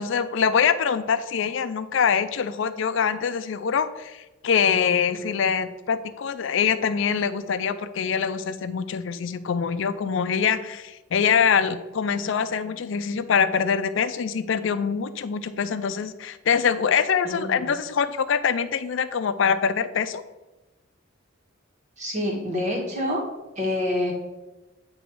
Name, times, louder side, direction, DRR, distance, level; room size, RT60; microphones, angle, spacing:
voice 1, 0.0-20.2, left 6 dB, 70° left, 12 dB, 0.4 m, -24 dB
voice 2, 17.2-17.6 22.0-23.2 23.6-24.1, left 1 dB, 40° right, -2 dB, 1.6 m, -27 dB
8.8 x 3.0 x 4.6 m, 1.1 s
head